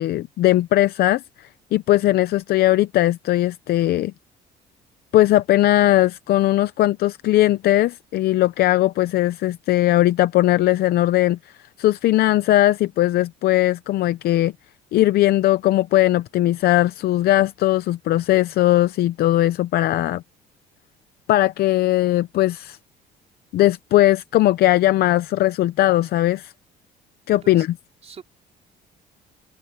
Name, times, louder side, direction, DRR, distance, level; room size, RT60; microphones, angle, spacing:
voice 1, 0.0-4.1 5.1-11.4 11.8-14.5 14.9-20.2 21.3-22.8 23.5-26.5 27.3-27.7, left 15 dB, 65° left, 0.7 m, -19 dB
voice 2, 27.3-27.7 28.0-28.2, right 6 dB, 40° right, 4.6 m, -42 dB
open air
cardioid pair, 110°, 17 cm